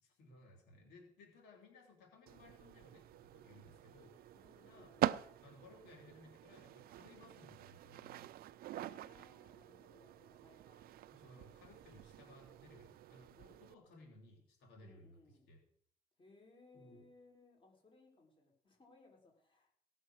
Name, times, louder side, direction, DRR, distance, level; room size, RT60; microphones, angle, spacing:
voice 1, 0.0-5.0 5.4-8.3 11.1-15.6 16.7-17.0, left 2 dB, 80° left, 1 dB, 3.5 m, -61 dB
sound 1, 2.3-13.7, right 13 dB, 65° right, 0.5 m, -45 dB
voice 2, 4.3-5.3 8.8-11.1 14.8-15.5 16.2-19.7, left 2 dB, 30° left, 0 dB, 4.5 m, -65 dB
17.5 x 6.6 x 6.4 m, 0.64 s
cardioid pair, 110°, 17 cm